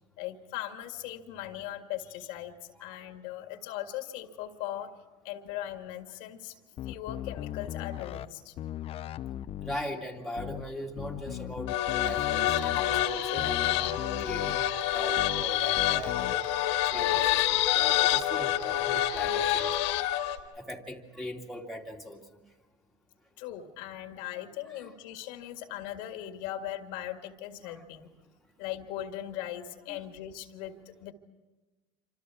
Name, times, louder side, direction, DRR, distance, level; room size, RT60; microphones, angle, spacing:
voice 1, 0.2-4.9 5.2-6.5 6.9-8.5 23.4-28.1 28.6-31.1, left 12 dB, 70° left, 6 dB, 1.9 m, -39 dB
sound 1, 6.8-8.3 8.6-9.8 10.4-10.6 11.0-13.1 13.4-14.6 15.2-15.4 15.8-16.3, left 11 dB, 40° left, 0.8 m, -38 dB
voice 2, 9.6-11.7 12.0-13.8 14.2-14.6 14.9-16.4 16.9-19.7 20.6-22.4 24.7-24.9 27.6-27.8 29.9-30.1, equal, ahead, -1 dB, 2.5 m, -40 dB
sound 2, 11.7-20.4, left 13 dB, 85° left, 2.1 m, -27 dB
27.0 x 26.0 x 4.8 m, 1.2 s
supercardioid pair, 110°, 15 cm